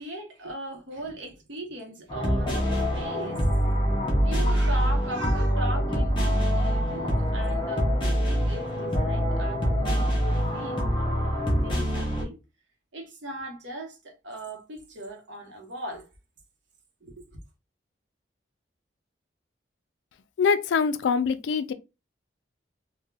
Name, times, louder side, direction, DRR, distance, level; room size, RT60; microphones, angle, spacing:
voice 1, 0.0-3.5 4.2-12.4 12.9-16.1 17.0-17.3, right 1 dB, 85° right, 0.8 m, -39 dB
sound 1, 2.1-12.2, equal, 25° left, 0.6 m, -25 dB
voice 2, 20.4-21.7, left 5 dB, 80° left, 0.3 m, -24 dB
3.2 x 2.1 x 2.2 m
head